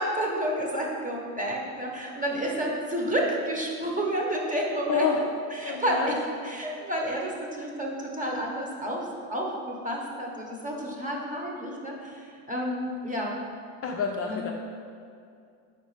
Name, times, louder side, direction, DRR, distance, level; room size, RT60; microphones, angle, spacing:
voice 1, 0.0-5.1 5.5-6.2 6.4-13.4 14.3-14.5, right 1 dB, 15° right, -2 dB, 1.2 m, -30 dB
voice 2, 4.9-5.2 5.6-6.2 13.8-14.5, left 6 dB, 30° left, 0 dB, 0.5 m, -28 dB
5.1 x 4.5 x 5.0 m, 2.4 s
supercardioid pair, 105°, 46 cm